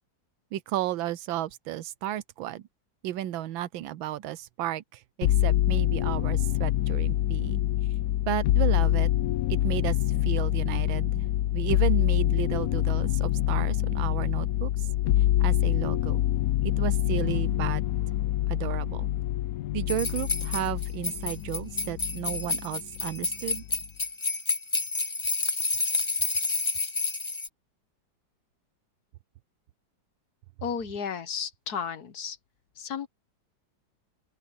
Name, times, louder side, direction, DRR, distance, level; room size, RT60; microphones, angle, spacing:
voice 1, 0.5-2.7 3.0-7.6 8.3-9.1 9.5-10.0 10.2-11.2 11.5-14.9 15.4-16.2 16.6-17.8 18.5-19.1 19.7-23.6, right 13 dB, 90° right, 1.5 m, -33 dB
sound 1, 5.2-22.6 23.0-23.8, left 13 dB, 90° left, 0.7 m, -26 dB
sound 2, 19.9-27.5, left 3 dB, 25° left, 0.6 m, -29 dB
voice 2, 30.6-32.4 32.8-33.1, left 7 dB, 55° left, 1.5 m, -33 dB
open air
omnidirectional pair, 2.1 m